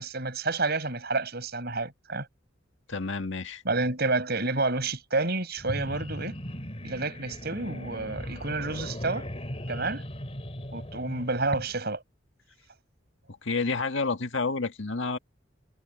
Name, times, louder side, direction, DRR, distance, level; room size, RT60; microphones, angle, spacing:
voice 1, 0.0-2.3 3.6-6.4 6.8-9.3 9.7-10.0 10.7-12.0, right 3 dB, 55° right, 7.4 m, -29 dB
voice 2, 2.9-3.6 13.4-15.2, left 4 dB, 70° left, 1.7 m, -29 dB
sound 1, 5.6-11.8, equal, 30° left, 2.7 m, -38 dB
head